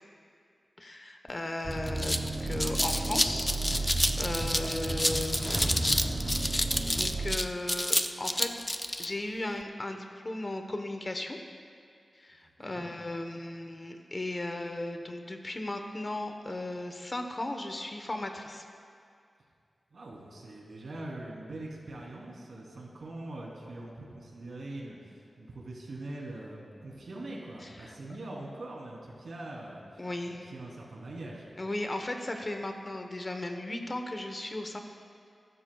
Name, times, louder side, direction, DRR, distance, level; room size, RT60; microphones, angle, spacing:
voice 1, 0.8-5.9 6.9-8.5 9.0-11.4 12.2-18.6 27.6-28.0 30.0-30.5 31.6-34.8, left 1 dB, 35° left, 5 dB, 1.0 m, -36 dB
sound 1, 1.3-1.4 1.7-9.1, left 1 dB, 10° left, 0.5 m, -29 dB
sound 2, 1.6-7.4, right 2 dB, 20° right, 0.7 m, -33 dB
voice 2, 19.9-31.5, right 2 dB, 70° right, -3 dB, 3.1 m, -43 dB
22.0 x 12.5 x 2.3 m, 2.3 s
wide cardioid pair, 100°, 0 cm